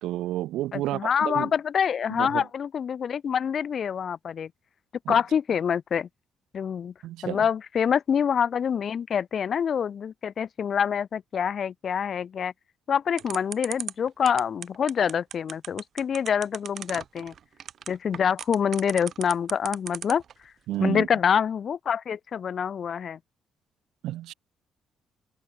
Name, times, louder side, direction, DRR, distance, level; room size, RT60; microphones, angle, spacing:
voice 1, 0.0-1.5 2.2-2.4 5.1-5.2 7.0-7.4 20.7-21.1 24.0-24.3, right 15 dB, 90° right, 3.8 m, -30 dB
voice 2, 0.7-4.5 5.1-6.1 6.5-6.9 7.2-12.5 12.9-17.3 17.9-20.2 20.8-23.2, left 7 dB, 55° left, 6.3 m, -26 dB
sound 1, 13.2-20.3, right 8 dB, 60° right, 4.9 m, -36 dB
cardioid pair, 90°, 0 cm